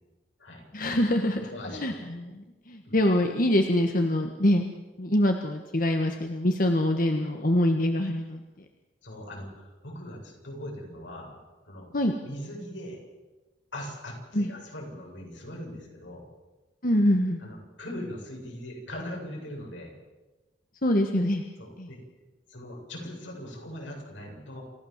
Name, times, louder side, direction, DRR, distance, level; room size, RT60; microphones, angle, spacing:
voice 1, 0.7-1.4 1.8-4.7 5.0-8.4 11.9-12.1 14.3-14.5 16.8-17.4 20.8-21.4 21.8-21.9, left 1 dB, 50° left, 4 dB, 1.5 m, -24 dB
voice 2, 1.3-2.0 2.8-2.9 9.0-11.4 11.7-11.9 12.2-13.0 13.7-16.3 17.4-19.9 21.6-22.0 22.5-24.6, left 1 dB, 80° left, 0 dB, 7.8 m, -40 dB
28.5 x 15.5 x 7.4 m, 1.2 s
head